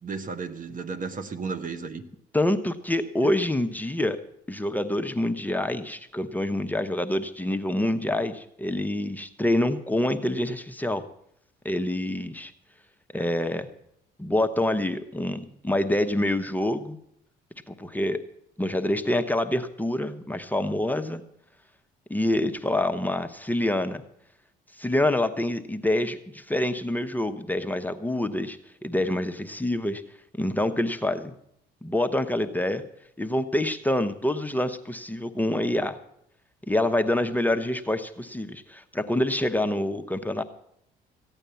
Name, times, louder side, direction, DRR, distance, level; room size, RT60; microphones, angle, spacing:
voice 1, 0.0-2.0 3.2-3.3 13.2-13.3, right 5 dB, 40° right, 10 dB, 1.2 m, -34 dB
voice 2, 2.3-4.2 4.5-11.0 11.6-12.5 13.1-13.7 14.2-17.0 17.7-18.2 18.6-21.2 22.1-24.0 24.8-30.0 30.4-31.3 31.8-32.8 33.2-36.0 36.7-40.4, left 1 dB, 10° left, 7 dB, 0.9 m, -26 dB
15.5 x 9.0 x 7.0 m, 0.75 s
supercardioid pair, 75°, 20 cm